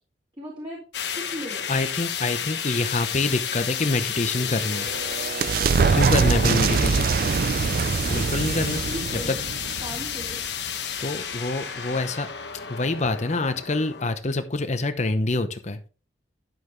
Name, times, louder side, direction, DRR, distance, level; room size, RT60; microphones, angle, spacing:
voice 1, 0.4-0.8 1.1-1.7 8.5-9.4 9.8-10.4, equal, 25° right, -4 dB, 2.6 m, -37 dB
sound 1, 0.9-14.2, left 8 dB, 75° left, 1.1 m, -32 dB
voice 2, 1.7-4.9 5.9-7.1 8.1-8.8 9.1-9.3 11.0-12.3 12.7-15.8, left 2 dB, 40° left, 9 dB, 0.9 m, -26 dB
sound 2, 4.3-10.7, right 5 dB, 55° right, 0.4 m, -24 dB
11.0 x 7.2 x 3.2 m, 0.35 s
head